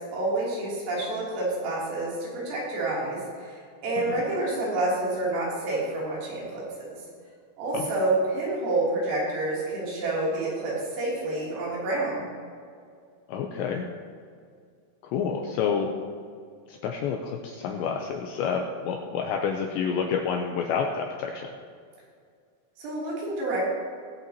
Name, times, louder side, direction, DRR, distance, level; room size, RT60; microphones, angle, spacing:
voice 1, 0.1-7.0 7.6-12.3 22.8-23.6, right 2 dB, 80° right, -6 dB, 5.9 m, -28 dB
voice 2, 13.3-13.8 15.0-15.9 16.7-21.5, left 6 dB, 85° left, 2 dB, 2.5 m, -29 dB
20.0 x 8.2 x 2.9 m, 2.2 s
omnidirectional pair, 5.8 m